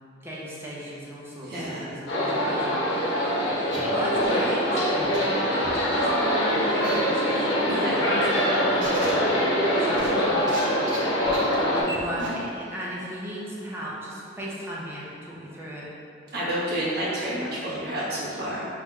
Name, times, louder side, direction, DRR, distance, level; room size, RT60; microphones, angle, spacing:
voice 1, 0.0-2.8 3.1-3.6 3.9-4.8 5.2-9.2 9.8-10.9 11.8-15.9, equal, 15° right, -6 dB, 0.6 m, -35 dB
voice 2, 1.4-1.9 7.7-8.0 16.3-18.6, right 1 dB, 60° right, -9 dB, 1.2 m, -29 dB
sound 1, 2.1-11.8, equal, 80° left, 0.9 m, -24 dB
sound 2, 3.7-3.8 4.2-4.4 5.0-5.2 5.6-5.7 6.8-7.0 7.3-7.4 8.5-9.1 9.9-10.6 10.9-11.0 11.2-11.5 11.9-12.0 12.2-12.3, right 2 dB, 85° right, 1.0 m, -35 dB
5.8 x 3.1 x 2.3 m, 2.6 s
head